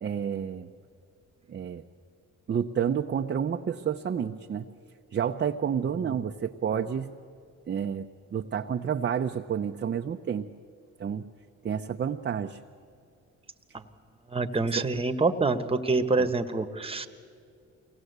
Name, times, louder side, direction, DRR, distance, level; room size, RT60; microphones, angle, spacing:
voice 1, 0.0-0.7 1.5-1.8 2.5-4.7 5.1-7.1 7.7-8.1 8.3-10.5 11.0-11.3 11.6-12.6 14.7-14.9 16.2-16.3, right 8 dB, 35° right, 4 dB, 0.8 m, -30 dB
voice 2, 14.3-17.1, right 3 dB, 20° right, 8 dB, 1.4 m, -26 dB
24.0 x 18.0 x 8.1 m, 2.3 s
cardioid pair, 90°, 30 cm